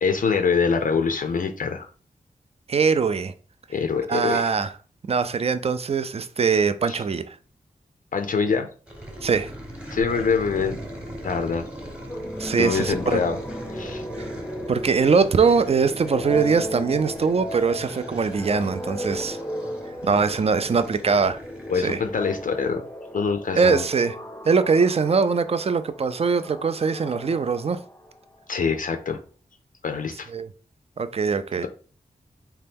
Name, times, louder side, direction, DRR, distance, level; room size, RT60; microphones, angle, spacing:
voice 1, 0.0-1.9 3.7-4.5 6.9-7.0 8.1-8.7 9.9-10.8 11.2-11.6 12.6-13.4 13.7-14.0 21.7-22.8 23.1-23.8 28.5-29.2 29.8-30.3, left 5 dB, 60° left, 0.4 m, -24 dB
voice 2, 2.7-3.3 4.1-4.7 5.1-7.3 9.2-9.5 12.4-13.2 14.2-14.3 14.7-19.4 20.0-21.4 21.8-22.0 23.6-24.1 24.4-27.8 30.3-30.5 31.0-31.6, right 5 dB, 40° right, 0.4 m, -22 dB
sound 1, 8.9-22.7, equal, 5° right, 1.0 m, -38 dB
sound 2, 12.1-28.5, equal, 15° left, 0.6 m, -36 dB
2.8 x 2.2 x 3.4 m
cardioid pair, 40°, 16 cm